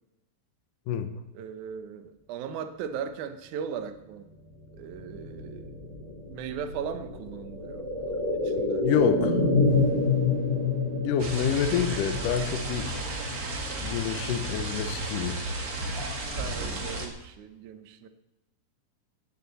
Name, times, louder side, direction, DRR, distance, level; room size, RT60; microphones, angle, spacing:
voice 1, 1.3-4.3 4.7-5.8 6.3-7.9 8.3-8.8 16.3-18.1, right 7 dB, 75° right, 9 dB, 1.8 m, -38 dB
sound 1, 4.6-14.4 14.8-14.9, left 3 dB, 20° left, 4.3 m, -28 dB
voice 2, 8.8-9.4 11.0-12.9 13.8-15.5, left 8 dB, 75° left, 8 dB, 2.0 m, -27 dB
sound 2, 11.2-17.1, right 2 dB, 45° right, 1.1 m, -33 dB
17.5 x 13.5 x 4.1 m, 0.93 s
omnidirectional pair, 4.8 m